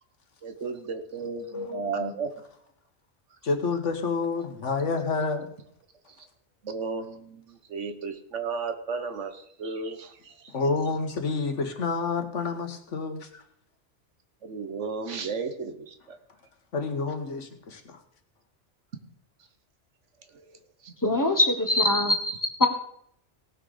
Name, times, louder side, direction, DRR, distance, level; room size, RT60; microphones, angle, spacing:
voice 1, 0.4-2.3 6.6-10.3 14.4-15.9 20.8-20.9, right 4 dB, 80° right, 8 dB, 1.5 m, -34 dB
voice 2, 1.5-2.2 3.4-5.5 10.5-13.4 16.7-18.0, left 4 dB, 90° left, 6 dB, 1.7 m, -29 dB
voice 3, 21.0-22.7, left 1 dB, 15° left, 5 dB, 1.3 m, -23 dB
17.5 x 6.3 x 5.0 m, 0.69 s
omnidirectional pair, 1.2 m